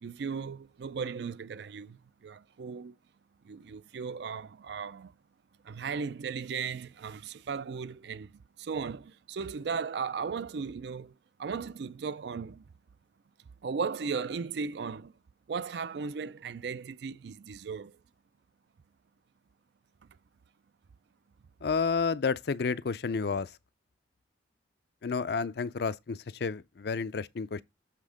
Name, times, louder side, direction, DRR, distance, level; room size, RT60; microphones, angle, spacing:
voice 1, 0.0-3.0 3.4-5.1 5.6-11.1 11.4-12.6 13.6-15.1 15.5-18.0, right 5 dB, 60° right, 0.4 m, -36 dB
voice 2, 21.6-23.5 25.0-27.6, left 5 dB, 55° left, 0.4 m, -30 dB
7.4 x 3.5 x 4.9 m
head